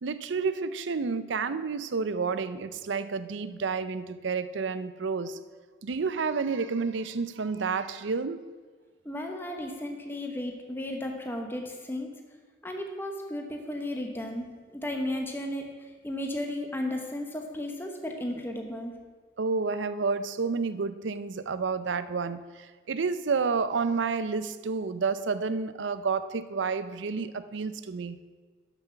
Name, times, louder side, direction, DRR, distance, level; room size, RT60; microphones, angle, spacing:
voice 1, 0.0-5.4 5.8-8.4 19.4-28.2, right 4 dB, 80° right, 13 dB, 0.5 m, -30 dB
voice 2, 9.0-12.1 12.6-14.5 14.7-19.0, left 1 dB, 10° left, 2 dB, 1.0 m, -34 dB
12.0 x 6.1 x 5.8 m, 1.5 s
head